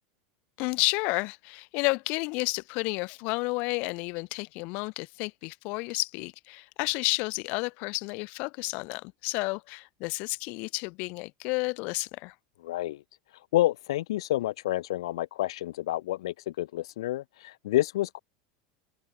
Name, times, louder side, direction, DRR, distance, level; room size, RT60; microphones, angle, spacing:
voice 1, 0.6-12.3, left 28 dB, 60° left, 3.3 m, -31 dB
voice 2, 12.6-13.0 13.5-18.2, left 15 dB, 75° left, 1.7 m, -29 dB
open air
hypercardioid pair, 100°, 3 cm